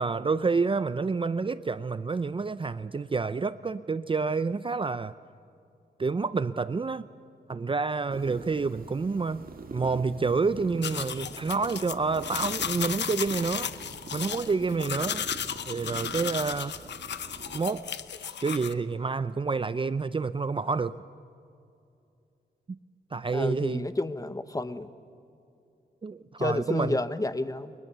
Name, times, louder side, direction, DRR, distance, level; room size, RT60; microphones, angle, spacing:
voice 1, 0.0-5.2 6.0-7.1 7.5-9.4 9.7-13.7 14.1-15.3 15.7-16.8 17.5-17.9 18.2-21.0 23.1-23.9 26.0-27.0, right 4 dB, 30° right, 0.5 m, -28 dB
sound 1, 8.1-17.6, right 4 dB, 55° right, 2.0 m, -44 dB
sound 2, 10.8-18.7, left 8 dB, 85° left, 0.9 m, -34 dB
voice 2, 23.3-24.9 26.4-27.7, left 2 dB, 20° left, 0.9 m, -30 dB
29.5 x 23.5 x 6.8 m
wide cardioid pair, 110°, 18 cm